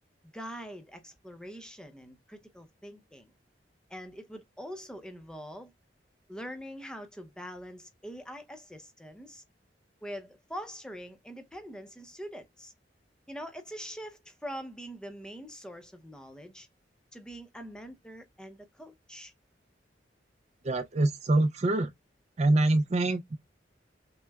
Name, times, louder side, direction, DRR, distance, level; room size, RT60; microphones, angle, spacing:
voice 1, 0.3-3.3 3.9-5.7 6.3-9.4 10.0-12.7 13.3-16.7 17.1-19.3, equal, 5° left, 0.7 m, -43 dB
voice 2, 20.6-21.9 22.4-23.4, right 2 dB, 40° right, 0.4 m, -25 dB
6.0 x 2.0 x 2.3 m
head